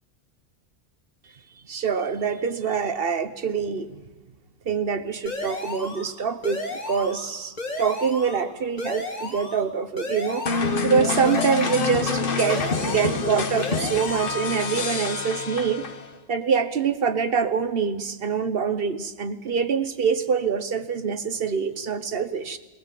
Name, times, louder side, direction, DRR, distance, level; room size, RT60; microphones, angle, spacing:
voice 1, 1.7-3.9 4.7-6.6 6.9-10.4 10.8-15.9 16.3-22.6, right 6 dB, 60° right, 11 dB, 1.2 m, -25 dB
sound 1, 5.3-6.1 6.4-7.3 7.6-8.4 8.8-9.6 10.0-10.8 11.3-12.1 12.4-13.3 13.6-14.4, left 2 dB, 40° left, 2.1 m, -33 dB
sound 2, 10.5-16.1, left 4 dB, 55° left, 1.4 m, -27 dB
20.0 x 18.5 x 7.6 m, 1.3 s
omnidirectional pair, 1.1 m